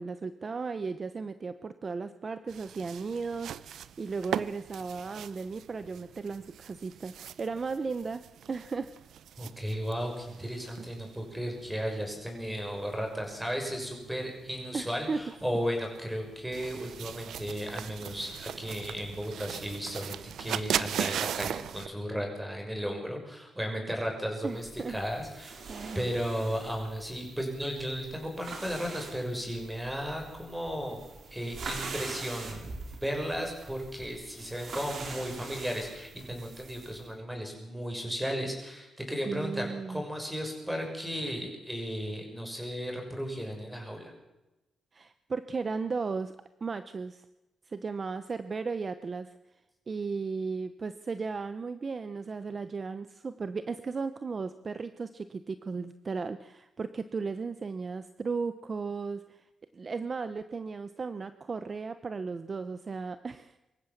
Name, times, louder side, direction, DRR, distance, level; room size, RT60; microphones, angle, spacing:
voice 1, 0.0-7.1 7.4-8.9 14.7-15.2 24.4-25.0 25.7-26.2 39.3-40.0 44.9-46.3 46.6-47.2 47.7-49.3 49.9-59.4 59.7-63.6, right 4 dB, 35° right, 12 dB, 0.9 m, -35 dB
sound 1, 2.5-21.9, right 9 dB, 80° right, 0.7 m, -39 dB
voice 2, 9.4-25.6 25.9-31.0 31.3-32.7 33.0-44.1, equal, 5° right, 2 dB, 6.6 m, -35 dB
sound 2, 24.5-37.0, right 4 dB, 60° right, 4.4 m, -44 dB
25.0 x 14.5 x 7.3 m, 0.97 s
cardioid pair, 115°, 0 cm